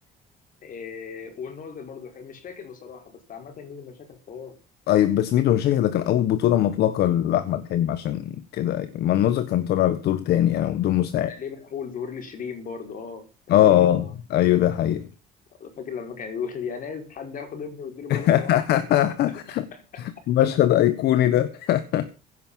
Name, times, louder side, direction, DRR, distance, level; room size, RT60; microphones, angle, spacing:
voice 1, 0.6-4.6 11.2-14.1 15.6-18.5 19.2-20.3, left 6 dB, 55° left, 5.0 m, -37 dB
voice 2, 4.9-11.3 13.5-15.1 18.1-19.7 20.0-22.1, left 12 dB, 75° left, 1.4 m, -21 dB
17.0 x 9.7 x 5.5 m
cardioid pair, 110°, 17 cm